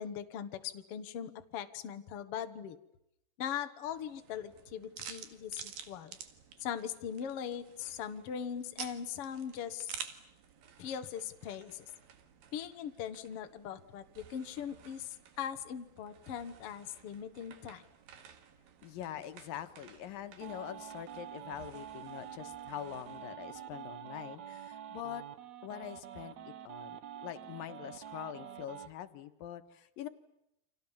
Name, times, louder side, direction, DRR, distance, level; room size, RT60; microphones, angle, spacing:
voice 1, 0.0-2.8 3.4-6.2 6.6-10.0 10.8-11.9 12.5-17.8, left 8 dB, 50° left, 8 dB, 1.9 m, -40 dB
sound 1, 3.9-23.3, right 8 dB, 90° right, 3.7 m, -52 dB
voice 2, 18.8-25.2 25.6-26.4 26.6-30.1, left 11 dB, 80° left, 10 dB, 3.0 m, -44 dB
sound 2, 20.4-28.9, right 10 dB, 60° right, 2.6 m, -47 dB
29.5 x 26.0 x 7.3 m, 0.83 s
omnidirectional pair, 4.0 m